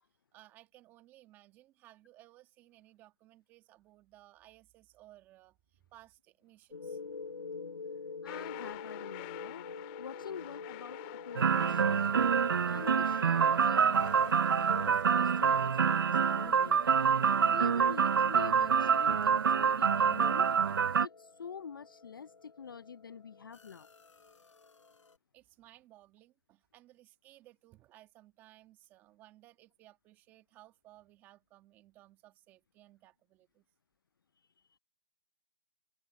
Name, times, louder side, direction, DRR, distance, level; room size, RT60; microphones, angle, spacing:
voice 1, 0.3-7.0 25.3-33.6, right 15 dB, 10° right, 1.7 m, -60 dB
sound 1, 6.7-25.2, left 4 dB, 65° left, 5.0 m, -48 dB
voice 2, 8.2-9.7 10.0-11.0 11.3-12.0 12.6-16.8 17.4-20.5 21.0-23.9, left 7 dB, 40° left, 0.5 m, -46 dB
sound 2, 8.3-15.7, left 26 dB, 15° left, 2.0 m, -50 dB
sound 3, 11.4-21.1, right 6 dB, 40° right, 0.4 m, -27 dB
hypercardioid pair, 165°, 17 cm